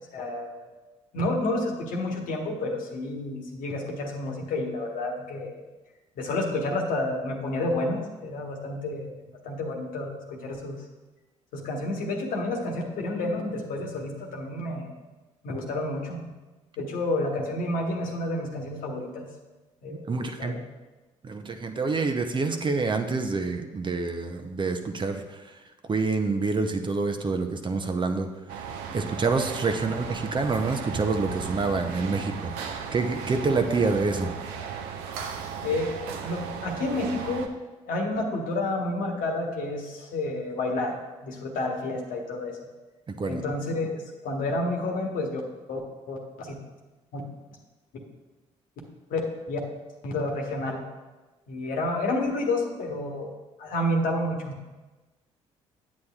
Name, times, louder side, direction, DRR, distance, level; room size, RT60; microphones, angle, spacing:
voice 1, 0.1-0.7 1.1-5.6 6.2-10.8 11.5-14.9 15.4-16.3 16.8-19.3 19.8-20.6 35.6-35.9 36.2-37.5 37.9-41.0 41.2-42.6 43.3-45.4 45.7-45.8 46.1-46.5 47.1-47.2 47.9-48.0 49.1-49.2 49.5-49.6 50.0-50.8 51.5-53.3 53.6-54.6, left 2 dB, 65° left, 1 dB, 1.2 m, -30 dB
voice 2, 19.9-20.6 21.2-28.3 28.9-32.5 32.9-34.3 43.1-43.4, right 4 dB, 30° right, 6 dB, 0.7 m, -27 dB
sound 1, 28.5-37.5, right 6 dB, 75° right, 0.6 m, -36 dB
8.4 x 7.9 x 2.4 m, 1.2 s
hypercardioid pair, 50°, 15 cm